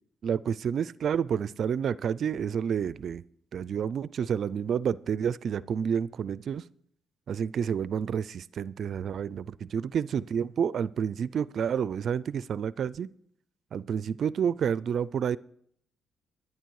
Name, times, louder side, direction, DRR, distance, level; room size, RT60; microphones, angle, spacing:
voice 1, 0.2-3.2 3.5-6.6 7.3-13.1 13.7-15.4, right 7 dB, 60° right, 19 dB, 0.4 m, -29 dB
12.0 x 11.0 x 4.7 m, 0.66 s
cardioid pair, 90°, 0 cm